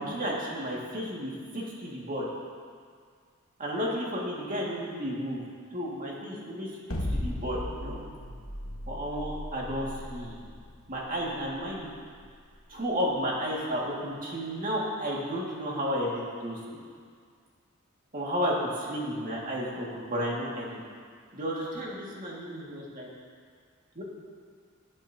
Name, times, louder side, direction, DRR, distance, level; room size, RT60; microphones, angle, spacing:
voice 1, 0.0-2.3 3.6-5.4 5.7-6.7 7.1-8.0 8.9-10.4 10.9-11.9 12.7-16.8 18.1-20.8 21.3-23.1 24.0-24.1, equal, 40° right, -4 dB, 2.1 m, -32 dB
sound 1, 6.9-13.1, left 1 dB, 70° left, 1.4 m, -37 dB
19.5 x 8.2 x 2.8 m, 2.1 s
head